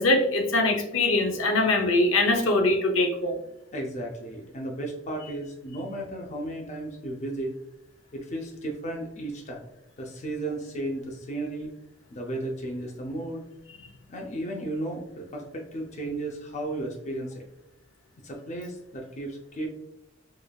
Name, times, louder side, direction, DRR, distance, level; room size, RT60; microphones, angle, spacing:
voice 1, 0.0-3.3, left 2 dB, 85° left, 4 dB, 0.6 m, -22 dB
voice 2, 3.7-7.5 8.1-9.7 10.0-11.7 12.1-13.4 14.1-17.5 18.2-19.7, right 1 dB, 35° left, 1 dB, 0.5 m, -34 dB
4.8 x 2.4 x 2.3 m, 0.84 s
head